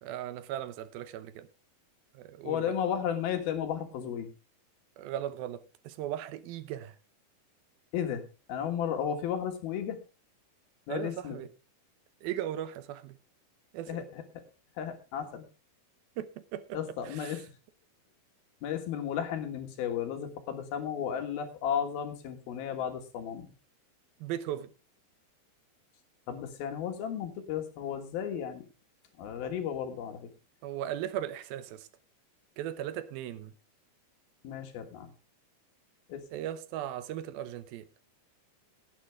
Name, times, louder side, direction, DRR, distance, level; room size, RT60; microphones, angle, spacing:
voice 1, 0.0-1.5 2.1-2.8 5.0-7.0 10.9-11.5 12.2-13.2 13.7-14.1 16.2-17.5 24.2-24.7 30.6-31.9 32.6-33.5 36.3-37.9, right 11 dB, 80° right, 2.7 m, -37 dB
voice 2, 2.4-4.3 7.9-8.2 8.5-10.0 10.9-11.4 13.9-14.2 14.8-15.4 16.7-17.4 18.6-23.5 26.3-28.7 29.2-30.3 34.4-35.1 36.1-36.2, left 8 dB, 80° left, 3.5 m, -34 dB
18.0 x 9.2 x 3.4 m
omnidirectional pair, 4.3 m